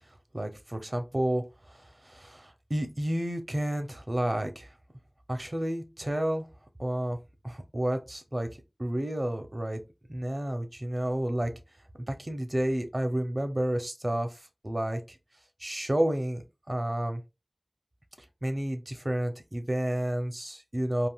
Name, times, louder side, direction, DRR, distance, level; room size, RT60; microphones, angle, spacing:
voice 1, 0.3-1.4 1.7-4.7 5.3-6.5 6.8-7.2 7.4-8.5 8.8-9.8 10.1-11.5 12.1-14.4 14.6-15.2 15.6-17.2 18.4-21.1, right 1 dB, 45° right, 0.6 m, -30 dB
3.5 x 2.5 x 2.3 m
wide cardioid pair, 45°, 0 cm